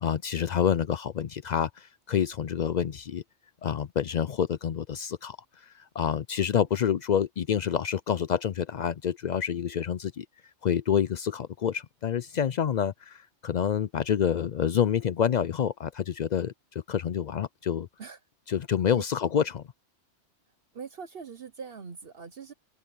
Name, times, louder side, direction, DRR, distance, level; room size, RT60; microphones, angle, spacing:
voice 1, 0.0-3.2 3.6-5.4 6.0-10.3 10.6-16.5 16.9-17.9 18.5-19.6, left 8 dB, 60° left, 0.4 m, -27 dB
voice 2, 18.9-19.3 20.7-22.5, right 5 dB, 55° right, 1.0 m, -42 dB
open air
omnidirectional pair, 1.2 m